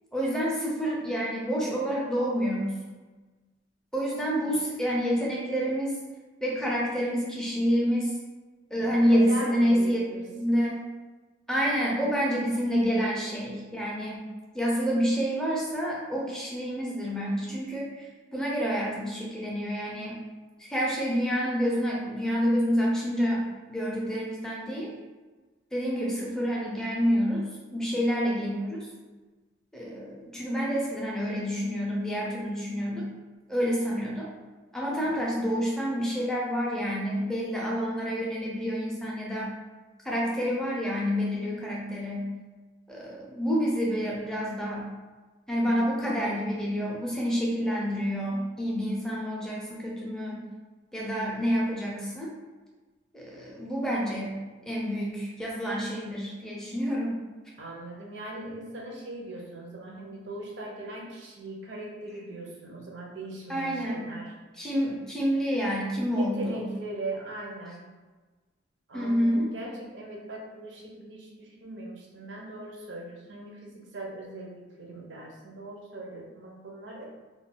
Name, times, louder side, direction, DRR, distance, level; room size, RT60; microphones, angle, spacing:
voice 1, 0.1-2.8 3.9-6.0 6.4-8.2 8.7-10.8 11.5-14.3 14.5-20.2 20.6-24.9 25.7-28.9 29.7-33.1 33.5-34.3 34.7-39.5 40.0-42.3 42.9-44.9 45.5-50.4 50.9-52.3 53.1-57.2 63.5-64.1 64.5-66.7 68.9-69.5, equal, 5° left, -4 dB, 0.5 m, -28 dB
voice 2, 8.8-10.5 35.0-35.4 51.2-51.4 57.6-64.3 66.0-67.9 68.9-77.0, right 2 dB, 60° right, -1 dB, 0.6 m, -40 dB
2.3 x 2.1 x 3.7 m, 1.3 s
head